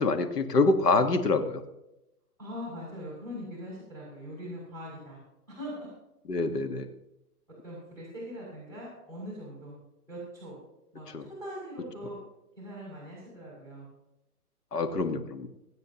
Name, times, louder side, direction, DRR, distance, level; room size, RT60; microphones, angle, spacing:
voice 1, 0.0-1.6 6.3-6.9 11.1-11.3 14.7-15.5, left 3 dB, 90° left, 7 dB, 1.7 m, -26 dB
voice 2, 2.4-5.2 5.5-5.8 7.6-9.8 10.1-10.6 10.9-12.2 12.6-13.9, equal, 5° left, -7 dB, 6.1 m, -41 dB
27.0 x 9.1 x 3.0 m, 0.91 s
hypercardioid pair, 150°, 46 cm